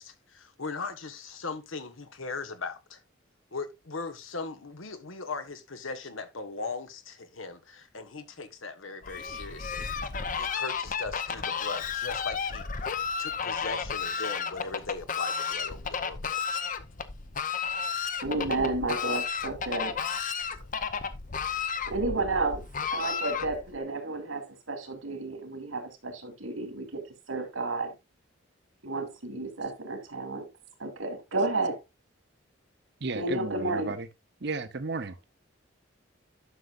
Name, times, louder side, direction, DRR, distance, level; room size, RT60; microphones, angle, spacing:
voice 1, 0.0-3.0 3.5-10.1 10.4-16.6, left 4 dB, 85° left, 1.3 m, -39 dB
Fowl, 9.0-23.8, left 6 dB, 40° left, 0.7 m, -33 dB
voice 2, 18.2-20.0 21.9-22.6 22.9-27.0 27.3-27.9 28.8-30.5 30.8-31.8 33.1-34.0, right 2 dB, 85° right, 2.6 m, -31 dB
voice 3, 33.0-34.1 34.4-35.2, right 3 dB, 55° right, 0.8 m, -33 dB
11.5 x 6.4 x 2.5 m
head